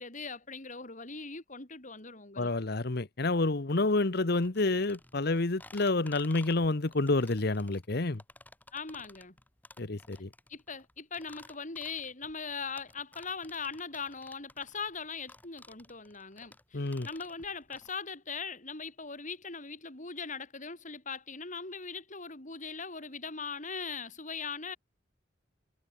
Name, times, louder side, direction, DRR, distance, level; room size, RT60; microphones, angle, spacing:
voice 1, 0.0-2.5 8.7-9.4 10.5-24.8, left 5 dB, 45° left, 4.8 m, -40 dB
voice 2, 2.4-8.2 9.8-10.3 16.7-17.1, left 2 dB, 60° left, 1.1 m, -29 dB
sound 1, 4.4-17.9, left 2 dB, 10° left, 5.4 m, -55 dB
head